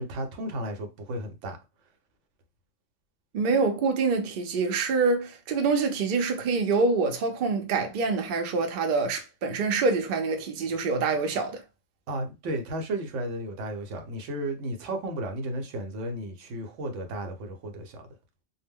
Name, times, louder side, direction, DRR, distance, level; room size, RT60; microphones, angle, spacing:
voice 1, 0.0-1.6 12.1-18.0, right 1 dB, 80° right, 0.9 m, -33 dB
voice 2, 3.3-11.6, right 4 dB, 55° right, 0.6 m, -26 dB
2.1 x 2.1 x 3.5 m
omnidirectional pair, 1.3 m